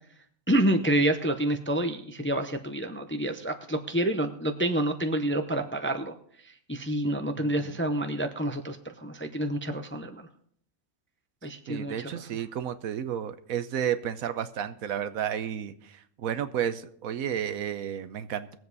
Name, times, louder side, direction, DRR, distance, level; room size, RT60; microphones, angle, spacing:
voice 1, 0.5-6.2 6.4-10.3 11.4-12.1, right 1 dB, 15° left, 6 dB, 0.5 m, -28 dB
voice 2, 7.4-7.8 11.7-18.6, right 9 dB, 80° right, 11 dB, 1.2 m, -32 dB
21.0 x 7.8 x 4.0 m, 0.63 s
omnidirectional pair, 1.5 m